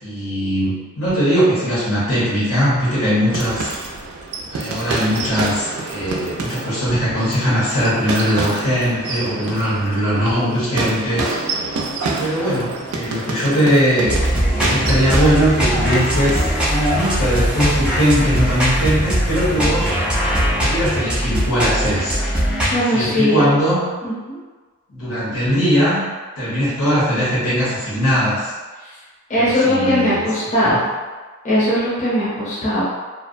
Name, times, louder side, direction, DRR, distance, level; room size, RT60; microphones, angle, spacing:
voice 1, 0.0-3.7 4.5-11.4 12.2-20.0 20.6-22.2 22.9-23.8 24.9-26.0 26.4-28.5 29.3-30.2 30.6-30.8, equal, 80° left, -10 dB, 1.0 m, -20 dB
sound 1, 3.3-17.2, right 3 dB, 80° right, 0.4 m, -28 dB
sound 2, 14.1-22.8, equal, 5° right, 0.3 m, -20 dB
voice 2, 22.7-23.5 24.0-24.4 28.8-28.9 29.3-30.8 31.4-32.8, equal, 35° left, -10 dB, 0.6 m, -19 dB
2.5 x 2.1 x 2.4 m, 1.3 s
head